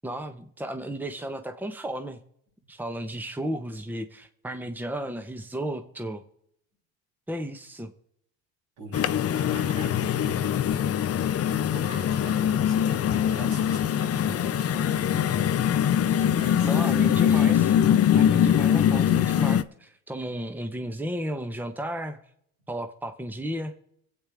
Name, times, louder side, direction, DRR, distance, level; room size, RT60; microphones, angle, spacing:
voice 1, 0.0-2.2 2.7-6.2 7.3-7.9 16.6-17.8 18.1-22.2 22.7-23.7, right 1 dB, 5° right, 7 dB, 1.2 m, -34 dB
voice 2, 8.8-11.0 11.4-15.4 16.1-16.8, right 2 dB, 80° right, -3 dB, 6.6 m, -43 dB
sound 1, 8.9-19.6, left 9 dB, 40° left, 0.7 m, -23 dB
25.5 x 8.7 x 3.6 m, 0.72 s
supercardioid pair, 75°, 37 cm